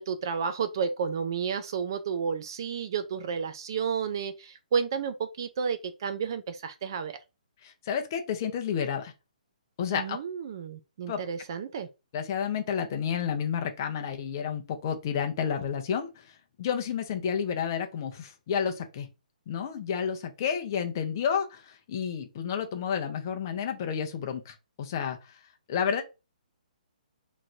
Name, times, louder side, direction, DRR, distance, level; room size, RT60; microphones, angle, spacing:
voice 1, 0.0-7.2 9.9-11.9, right 6 dB, 30° right, 0.3 m, -31 dB
voice 2, 7.6-9.1 9.8-10.2 11.1-11.2 12.1-16.2 16.6-19.1 19.5-25.2 25.7-26.0, left 7 dB, 25° left, 0.6 m, -30 dB
3.0 x 2.5 x 4.3 m
hypercardioid pair, 175°, 5 cm